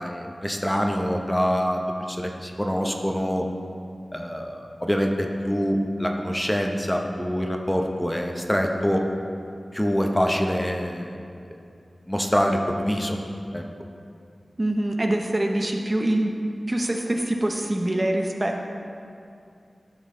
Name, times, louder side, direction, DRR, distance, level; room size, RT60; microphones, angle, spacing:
voice 1, 0.0-1.8 2.1-3.4 4.1-9.0 9.7-11.2 12.1-13.2 13.5-13.6, equal, 10° left, 2 dB, 0.8 m, -25 dB
voice 2, 14.6-16.3 16.7-18.7, right 1 dB, 30° right, 2 dB, 0.7 m, -24 dB
11.5 x 6.3 x 3.8 m, 2.4 s
wide cardioid pair, 60°, 0 cm